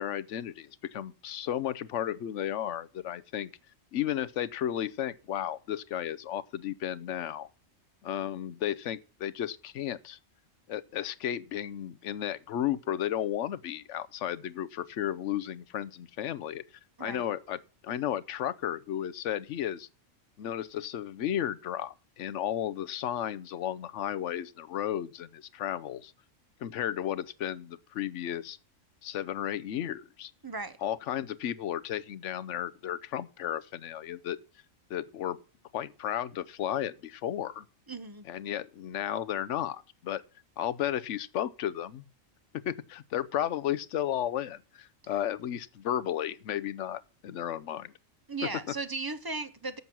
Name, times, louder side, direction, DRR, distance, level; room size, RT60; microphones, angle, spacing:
voice 1, 0.0-3.5 3.9-7.5 8.0-10.2 10.7-16.6 17.0-17.6 17.8-19.9 20.4-26.1 26.6-28.6 29.0-30.3 30.8-34.4 34.9-35.4 35.7-37.6 38.3-40.2 40.6-42.1 42.6-47.9, left 11 dB, 70° left, 1.0 m, -33 dB
voice 2, 30.4-30.8 37.9-38.2 48.3-49.8, right 3 dB, 20° right, 0.7 m, -36 dB
11.0 x 7.4 x 6.0 m
omnidirectional pair, 1.4 m